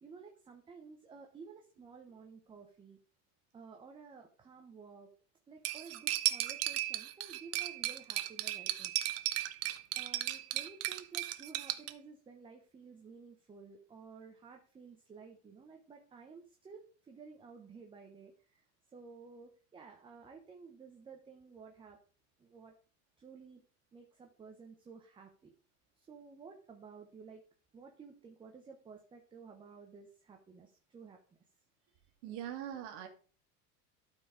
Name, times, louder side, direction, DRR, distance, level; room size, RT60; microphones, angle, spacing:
voice 1, 0.0-3.0 3.5-5.1 5.5-8.9 9.9-18.6 18.9-22.0 22.4-22.7 23.2-23.6 23.9-25.5 26.0-27.4 27.7-31.2, right 5 dB, 15° right, 3 dB, 0.9 m, -53 dB
Cutlery silverware, 5.6-11.9, right 15 dB, 40° right, 0.8 m, -35 dB
voice 2, 32.2-33.1, right 10 dB, 65° right, 4 dB, 2.2 m, -41 dB
12.0 x 4.7 x 4.9 m, 0.40 s
cardioid pair, 160°, 37 cm